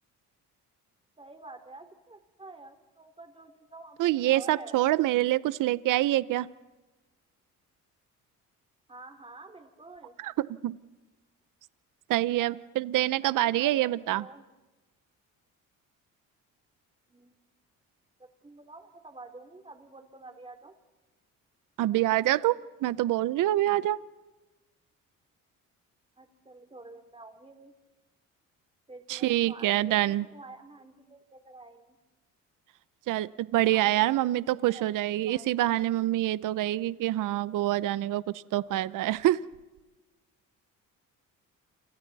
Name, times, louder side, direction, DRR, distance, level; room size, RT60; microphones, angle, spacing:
voice 1, 1.2-4.9 8.9-10.2 12.4-12.5 13.2-14.4 17.1-17.4 18.2-20.8 26.2-27.7 28.9-32.0 33.7-35.4, right 2 dB, 20° right, 6 dB, 3.0 m, -49 dB
voice 2, 4.0-6.5 10.2-10.8 12.1-14.2 21.8-24.0 29.1-30.3 33.1-39.4, right 15 dB, 75° right, 18 dB, 0.7 m, -26 dB
29.0 x 26.5 x 4.1 m, 1.1 s
cardioid pair, 100°, 32 cm